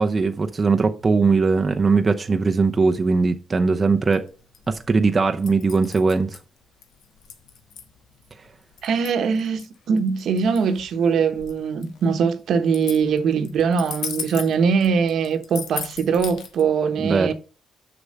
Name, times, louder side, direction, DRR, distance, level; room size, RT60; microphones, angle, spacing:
voice 1, 0.0-4.2 4.7-6.4 17.0-17.3, right 4 dB, 30° right, 0.7 m, -20 dB
sound 1, 4.0-16.6, left 7 dB, 80° left, 1.3 m, -38 dB
voice 2, 8.8-17.3, right 6 dB, 70° right, 1.1 m, -22 dB
6.6 x 6.1 x 5.5 m
cardioid pair, 90°, 0 cm